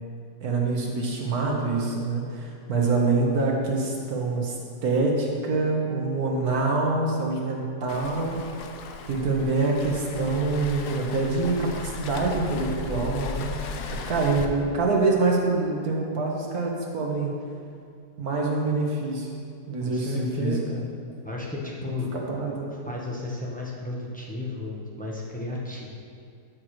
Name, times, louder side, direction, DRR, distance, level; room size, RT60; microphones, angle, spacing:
voice 1, 0.4-8.7 9.1-13.6 14.1-17.3 18.2-19.3 19.7-20.6 22.1-22.9, right 3 dB, 60° right, -1 dB, 1.7 m, -25 dB
Waves surf, 7.9-14.5, left 5 dB, 70° left, 1.2 m, -36 dB
voice 2, 19.8-20.8 21.2-22.1 22.8-25.9, left 2 dB, 5° left, -4 dB, 0.9 m, -33 dB
13.0 x 6.6 x 3.2 m, 2.4 s
omnidirectional pair, 1.8 m